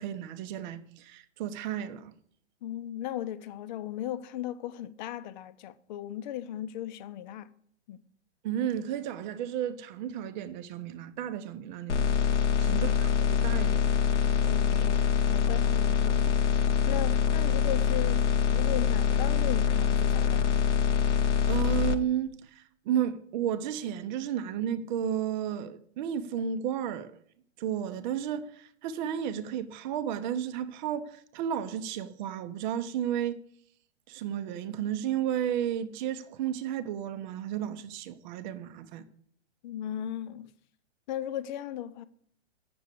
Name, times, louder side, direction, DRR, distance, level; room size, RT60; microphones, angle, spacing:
voice 1, 0.0-2.1 8.4-12.1 12.6-13.9 21.5-27.1 27.6-33.4 34.1-39.1, right 9 dB, 40° right, 0.8 m, -33 dB
voice 2, 2.6-7.5 7.9-8.0 12.7-13.1 14.4-16.5 16.9-20.7 39.6-40.5 41.1-42.0, left 11 dB, 40° left, 0.7 m, -37 dB
sound 1, 11.9-21.9, left 7 dB, 80° left, 1.0 m, -25 dB
7.8 x 6.9 x 6.7 m
hypercardioid pair, 130°, 35 cm